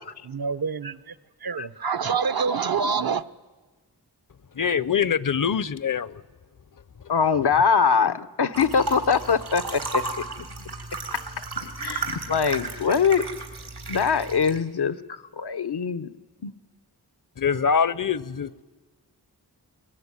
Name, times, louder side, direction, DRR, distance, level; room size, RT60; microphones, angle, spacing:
voice 1, 0.2-3.3, right 5 dB, 65° right, 0.8 m, -27 dB
voice 2, 4.5-6.2 17.4-18.6, left 7 dB, 55° left, 0.7 m, -24 dB
voice 3, 7.1-10.5 11.4-13.3 13.9-16.1 16.4-16.5, left 6 dB, 80° left, 0.9 m, -23 dB
sound 1, 8.5-14.6, right 3 dB, 90° right, 3.7 m, -34 dB
22.5 x 21.5 x 9.8 m
wide cardioid pair, 70°, 39 cm